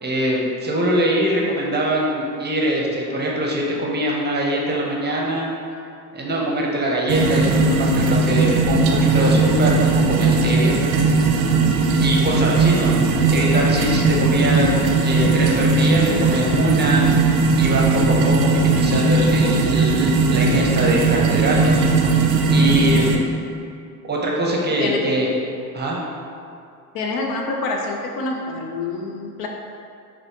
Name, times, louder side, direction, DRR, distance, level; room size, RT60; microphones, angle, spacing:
voice 1, 0.0-5.5 6.1-10.8 12.0-17.1 17.6-23.2 24.0-25.3 25.7-26.0, right 1 dB, 20° right, -2 dB, 0.7 m, -23 dB
sound 1, 7.1-23.2, right 3 dB, 55° right, 0.6 m, -18 dB
voice 2, 26.9-29.5, left 3 dB, 50° left, 2 dB, 0.5 m, -27 dB
5.4 x 2.5 x 2.8 m, 2.5 s
hypercardioid pair, 60°, 47 cm